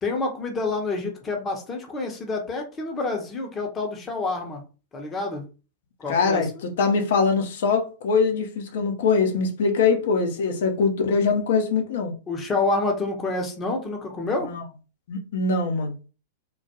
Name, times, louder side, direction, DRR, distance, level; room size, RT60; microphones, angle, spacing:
voice 1, 0.0-4.6 4.9-5.5 6.0-6.6 12.3-14.5, left 3 dB, 20° left, 0.7 m, -28 dB
voice 2, 6.1-6.5 6.8-12.1 14.4-14.6 15.1-15.9, left 4 dB, 60° left, 0.6 m, -22 dB
2.2 x 2.1 x 2.8 m
figure-of-eight pair, 100°, 0 cm